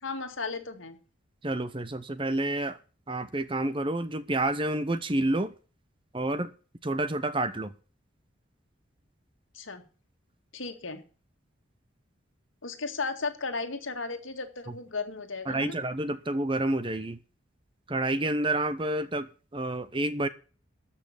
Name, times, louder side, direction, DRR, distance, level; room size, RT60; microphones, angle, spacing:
voice 1, 0.0-1.0 9.5-9.8 10.5-11.0 12.6-15.8, left 4 dB, 80° left, 6 dB, 2.1 m, -35 dB
voice 2, 1.4-2.8 3.1-5.5 6.1-6.5 6.8-7.7 15.5-17.2 17.9-20.3, right 1 dB, 25° right, 13 dB, 0.9 m, -29 dB
13.5 x 5.9 x 8.2 m, 0.37 s
head